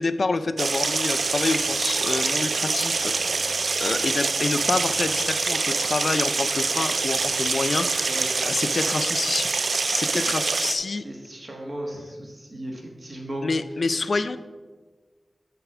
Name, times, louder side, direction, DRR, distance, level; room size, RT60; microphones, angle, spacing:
voice 1, 0.0-3.1 3.8-8.2 8.4-9.5 9.9-11.0 13.4-14.4, left 3 dB, 65° left, 12 dB, 0.3 m, -27 dB
sound 1, 0.6-10.8, right 4 dB, 75° right, 0.4 m, -25 dB
voice 2, 11.0-13.5, right 1 dB, 50° right, 0 dB, 1.6 m, -35 dB
6.7 x 4.9 x 6.0 m, 1.4 s
wide cardioid pair, 80°, 0 cm